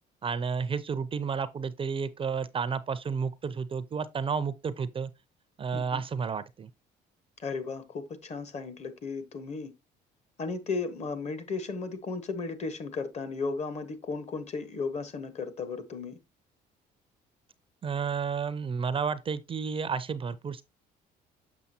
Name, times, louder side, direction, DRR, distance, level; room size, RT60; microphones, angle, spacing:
voice 1, 0.2-5.1 5.6-6.7 17.8-20.6, right 6 dB, 30° right, 0.5 m, -31 dB
voice 2, 7.4-9.7 10.4-16.2, left 4 dB, 40° left, 1.2 m, -35 dB
7.1 x 6.0 x 2.8 m
cardioid pair, 110°, 17 cm